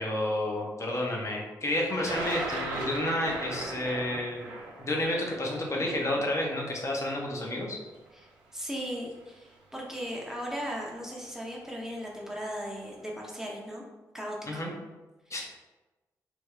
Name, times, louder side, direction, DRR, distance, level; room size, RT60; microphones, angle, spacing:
voice 1, 0.0-4.5 4.8-7.8 14.5-14.7 15.3-15.5, left 1 dB, 40° left, -1 dB, 0.9 m, -30 dB
Thunder, 1.9-7.9 8.8-8.9 10.0-10.3 10.6-11.1, right 2 dB, 90° right, 0.5 m, -38 dB
voice 2, 8.5-13.8 14.1-14.6, equal, 5° right, -3 dB, 0.9 m, -37 dB
3.4 x 2.3 x 3.3 m, 1.1 s
supercardioid pair, 45°, 8 cm